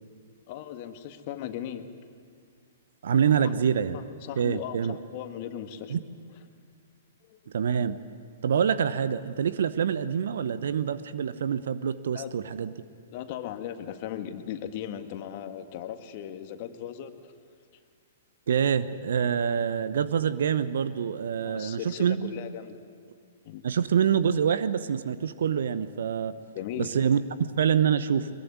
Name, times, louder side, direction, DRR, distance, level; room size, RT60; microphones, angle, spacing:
voice 1, 0.5-1.8 3.3-3.5 3.9-6.0 7.3-7.4 12.1-12.3 13.1-17.1 21.4-22.8 23.5-23.7 26.6-27.0, left 10 dB, 45° left, 8 dB, 1.8 m, -37 dB
voice 2, 3.0-4.0 4.4-5.0 5.9-6.0 7.5-8.0 8.4-12.7 18.5-22.3 23.6-26.3 26.8-28.3, right 7 dB, 60° right, 14 dB, 0.9 m, -26 dB
22.5 x 22.0 x 9.6 m, 2.1 s
figure-of-eight pair, 115°, 0 cm